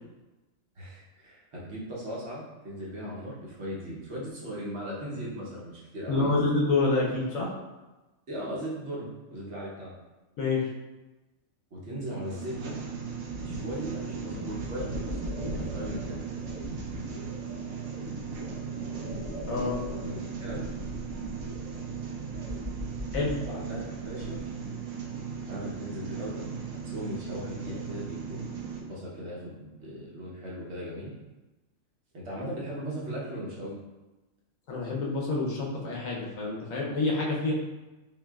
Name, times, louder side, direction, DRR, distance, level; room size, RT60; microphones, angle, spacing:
voice 1, 0.8-6.4 8.3-9.9 11.7-12.8 13.3-15.2 15.5-16.2 20.0-20.7 23.5-24.4 25.5-26.5 26.8-28.5 28.7-31.2 32.1-33.8, equal, 55° right, -5 dB, 1.1 m, -38 dB
voice 2, 6.1-7.5 10.4-10.7 19.5-19.8 23.1-23.3 34.7-37.5, left 3 dB, 75° left, -3 dB, 1.2 m, -27 dB
sound 1, 12.2-28.8, right 6 dB, 80° right, 1.1 m, -37 dB
sound 2, 13.3-24.5, left 1 dB, 15° right, 0.5 m, -40 dB
5.5 x 2.5 x 2.3 m, 1.1 s
omnidirectional pair, 1.5 m